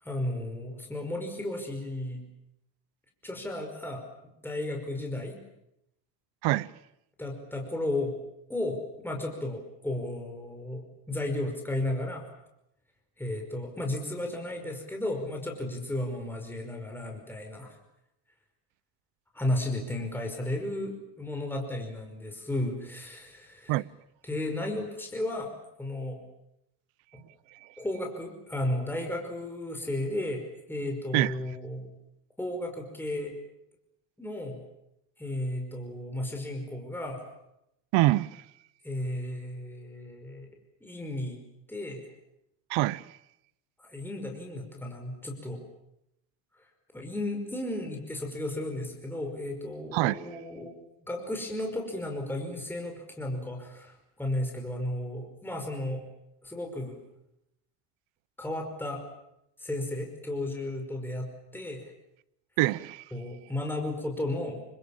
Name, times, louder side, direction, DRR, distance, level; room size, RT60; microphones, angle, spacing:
voice 1, 0.0-2.2 3.2-4.0 4.4-5.4 7.2-8.2 8.5-12.3 13.2-17.8 19.3-23.8 24.2-25.5 25.8-26.2 27.1-27.2 27.8-30.4 30.7-31.9 32.4-33.3 34.2-34.6 35.2-37.3 38.8-40.5 40.8-41.4 41.7-42.0 43.8-45.6 46.9-50.7 51.0-56.0 56.4-57.0 58.4-59.0 59.6-61.9 63.1-64.6, left 1 dB, 5° left, 5.2 m, -34 dB
voice 2, 37.9-38.4 42.7-43.0 49.9-50.2 62.6-63.0, right 18 dB, 70° right, 1.0 m, -25 dB
29.0 x 26.5 x 7.4 m
cardioid pair, 135°, 46 cm